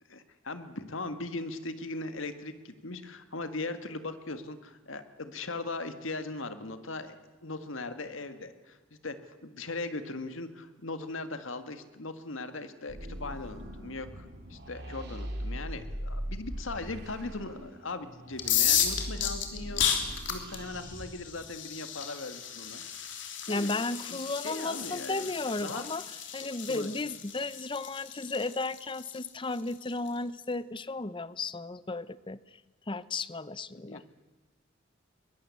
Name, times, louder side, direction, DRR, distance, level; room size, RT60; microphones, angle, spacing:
voice 1, 0.1-7.2 7.4-8.8 9.0-19.8 20.1-22.8 23.5-23.7 24.1-25.3 25.6-25.8 26.4-26.9 33.8-34.2, left 3 dB, 80° left, 9 dB, 1.7 m, -39 dB
sound 1, 12.9-21.1, equal, 55° right, 3.6 m, -40 dB
sound 2, 18.3-30.1, left 9 dB, 65° left, 3.2 m, -33 dB
voice 2, 23.5-26.0 26.3-32.4 32.9-34.0, left 3 dB, 25° left, 17 dB, 0.7 m, -34 dB
22.5 x 21.5 x 8.4 m, 1.2 s
head